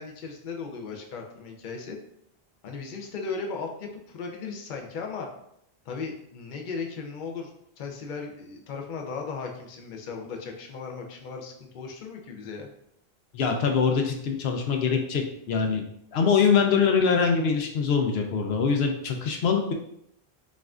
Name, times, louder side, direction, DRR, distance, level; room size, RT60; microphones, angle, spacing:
voice 1, 0.0-2.0 2.6-5.3 5.8-7.5 7.8-12.7, left 4 dB, 55° left, 2 dB, 0.7 m, -36 dB
voice 2, 13.3-15.8 16.1-19.7, left 6 dB, 85° left, 3 dB, 0.8 m, -23 dB
5.3 x 2.5 x 2.4 m, 0.73 s
omnidirectional pair, 1.0 m